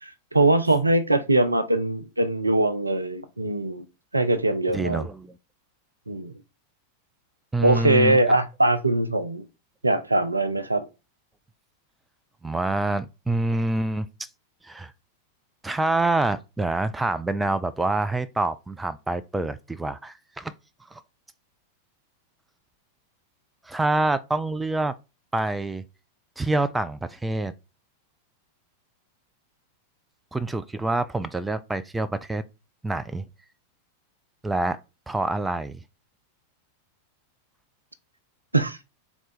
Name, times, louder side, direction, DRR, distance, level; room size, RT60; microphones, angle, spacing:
voice 1, 0.0-3.8 4.1-5.1 6.1-6.3 7.6-9.5 9.8-10.9 38.5-38.8, right 2 dB, 85° right, 0.5 m, -22 dB
voice 2, 4.7-5.4 7.5-8.2 12.4-14.3 14.6-14.9 15.6-20.5 20.9-21.0 23.7-24.9 25.3-25.8 26.4-27.5 30.3-32.4 32.8-33.3 34.4-34.8 35.1-35.8, right 2 dB, 10° right, 0.3 m, -26 dB
3.8 x 2.3 x 4.1 m
figure-of-eight pair, 90°, 0 cm